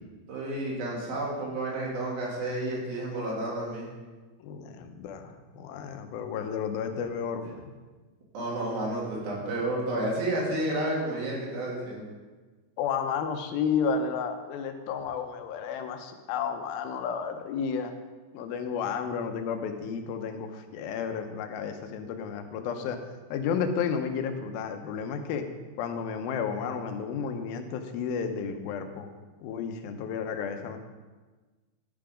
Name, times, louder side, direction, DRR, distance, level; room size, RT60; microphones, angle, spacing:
voice 1, 0.3-3.9 8.3-12.1, right 1 dB, 75° right, -4 dB, 4.0 m, -31 dB
voice 2, 4.4-7.7 12.8-17.9 18.3-23.0 23.3-25.4 25.8-29.1 29.4-30.8, left 6 dB, 85° left, 6 dB, 2.6 m, -32 dB
11.5 x 5.8 x 5.0 m, 1.3 s
omnidirectional pair, 4.2 m